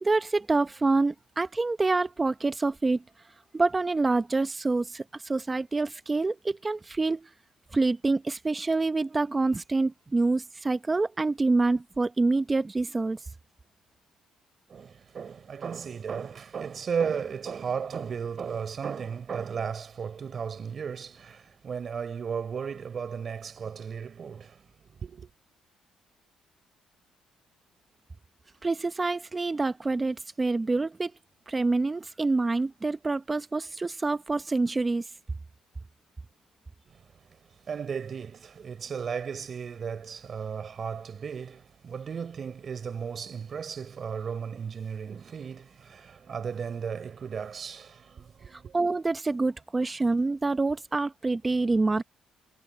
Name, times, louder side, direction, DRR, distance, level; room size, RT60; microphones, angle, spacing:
voice 1, 0.0-3.0 3.5-7.3 7.7-13.2 28.6-31.1 31.5-35.1 48.5-52.0, right 3 dB, 20° right, 0.8 m, -26 dB
voice 2, 14.7-25.3 36.9-48.7, right 6 dB, 45° right, 3.8 m, -35 dB
cardioid pair, 100°, 0 cm